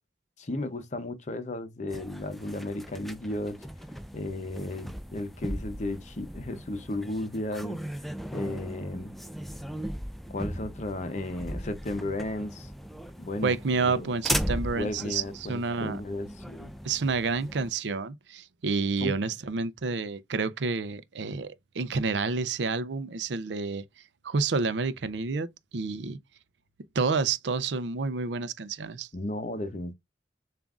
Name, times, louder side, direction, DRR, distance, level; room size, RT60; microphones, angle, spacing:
voice 1, 0.4-3.6 4.1-7.8 8.3-9.1 10.3-12.7 13.2-13.6 13.8-14.1 14.7-16.7 19.0-19.1 29.1-29.9, left 1 dB, 40° left, 0.7 m, -34 dB
sound 1, 1.9-17.7, equal, ahead, 0.4 m, -38 dB
voice 2, 13.4-16.0 16.8-23.8 24.2-25.5 25.7-26.2 26.9-29.1, right 4 dB, 80° right, 0.5 m, -29 dB
6.9 x 2.5 x 2.4 m
head